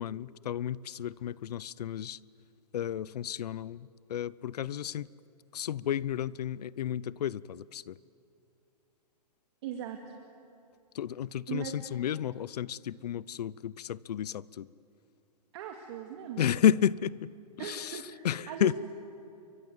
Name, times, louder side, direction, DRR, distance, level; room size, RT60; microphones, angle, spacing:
voice 1, 0.0-2.2 2.7-5.1 5.5-7.9 10.9-14.7 16.4-17.3 17.6-17.9 18.2-18.7, left 10 dB, 80° left, 22 dB, 0.7 m, -31 dB
voice 2, 9.6-10.0 11.5-11.8 15.5-16.6 17.6-18.7, right 10 dB, 40° right, 3 dB, 2.2 m, -39 dB
29.0 x 24.5 x 7.9 m, 2.8 s
hypercardioid pair, 165°, 20 cm